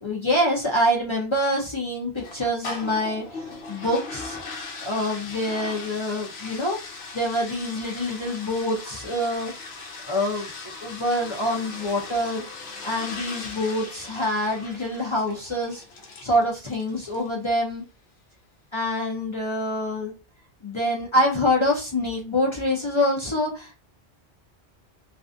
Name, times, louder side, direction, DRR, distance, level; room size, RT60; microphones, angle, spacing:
voice 1, 0.0-4.4 4.8-6.8 7.1-9.5 10.0-12.4 12.8-15.8 16.2-17.8 18.7-20.1 20.6-23.8, left 1 dB, 35° left, -1 dB, 0.5 m, -26 dB
sound 1, 2.2-17.4, left 3 dB, 70° left, 0.9 m, -39 dB
2.4 x 2.3 x 2.4 m, 0.32 s
omnidirectional pair, 1.2 m